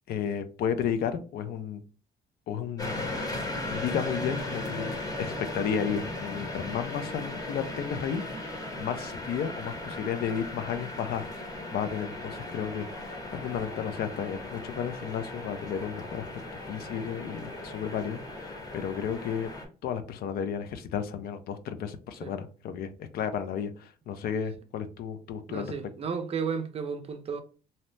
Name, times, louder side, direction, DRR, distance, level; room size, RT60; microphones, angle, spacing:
voice 1, 0.1-1.8 2.5-3.1 3.7-4.9 5.2-11.3 11.7-16.2 16.7-19.5 19.8-25.7, left 8 dB, 65° left, 0.5 m, -33 dB
sound 1, 2.8-19.7, left 2 dB, 20° left, 0.9 m, -37 dB
voice 2, 25.5-27.4, right 6 dB, 35° right, 0.5 m, -33 dB
2.7 x 2.0 x 3.1 m
cardioid pair, 110°, 17 cm